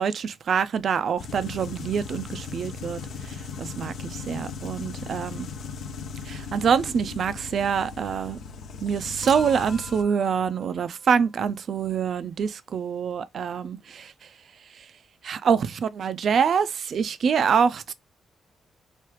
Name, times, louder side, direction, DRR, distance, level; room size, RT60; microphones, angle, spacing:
voice 1, 0.0-5.5 6.3-8.4 8.8-14.1 14.8-14.9 15.2-17.9, right 7 dB, 65° right, 0.3 m, -25 dB
sound 1, 1.2-10.0, left 5 dB, 70° left, 0.3 m, -38 dB
Human group actions / Chink clink / Liquid, 9.2-11.6 13.1-13.2, equal, 5° right, 0.5 m, -44 dB
3.0 x 2.3 x 3.0 m
cardioid pair, 85°, 0 cm